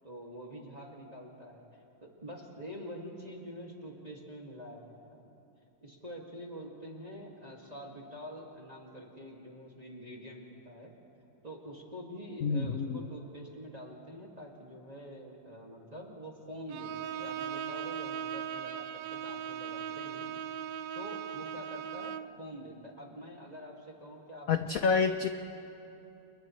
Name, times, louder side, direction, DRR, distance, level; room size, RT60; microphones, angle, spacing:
voice 1, 0.0-5.3 5.8-10.9 11.4-20.3 20.9-24.9, equal, 20° right, -2 dB, 2.2 m, -46 dB
voice 2, 12.4-13.0 24.5-25.3, left 5 dB, 75° left, 8 dB, 0.8 m, -28 dB
Bowed string instrument, 16.7-22.4, right 9 dB, 70° right, 1.1 m, -38 dB
30.0 x 29.5 x 3.2 m, 2.8 s
omnidirectional pair, 2.3 m